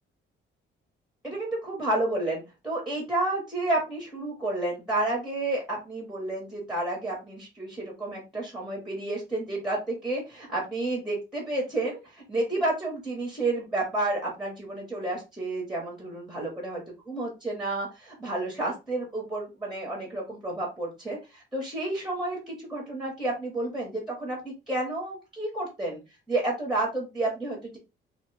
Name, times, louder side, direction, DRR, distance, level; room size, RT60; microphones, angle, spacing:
voice 1, 1.2-16.8 17.1-26.0 26.3-27.8, right 2 dB, ahead, -1 dB, 0.9 m, -30 dB
2.8 x 2.1 x 3.2 m, 0.27 s
cardioid pair, 140°, 20 cm